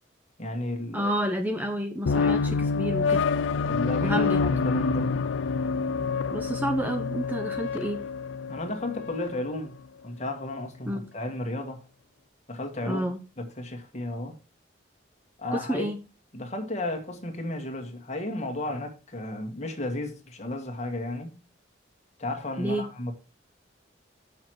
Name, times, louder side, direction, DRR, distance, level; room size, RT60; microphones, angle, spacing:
voice 1, 0.4-1.1 3.7-5.1 8.5-9.8 10.0-11.8 12.5-13.0 13.4-14.4 15.4-15.9 16.3-21.4 22.2-23.1, left 1 dB, 35° left, 1.7 m, -33 dB
voice 2, 0.9-3.2 4.0-4.4 6.3-8.0 10.9-11.1 12.8-13.2 15.5-16.0 22.6-22.9, equal, 10° right, 0.7 m, -29 dB
sound 1, 2.0-9.4, left 5 dB, 85° left, 0.5 m, -27 dB
7.6 x 6.4 x 4.7 m
head